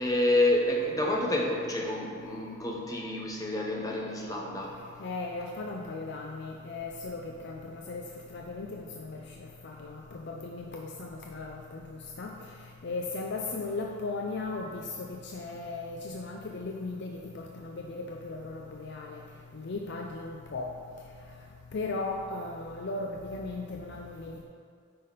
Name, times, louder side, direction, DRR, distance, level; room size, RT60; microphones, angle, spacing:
voice 1, 0.0-4.8, left 1 dB, 15° left, -1 dB, 1.0 m, -28 dB
voice 2, 5.0-8.0 8.3-9.2 9.6-10.0 10.3-11.8 12.2-12.3 12.8-19.2 19.5-20.7 21.7-24.4, left 3 dB, 55° left, 1 dB, 0.6 m, -37 dB
9.5 x 5.6 x 4.1 m, 2.2 s
head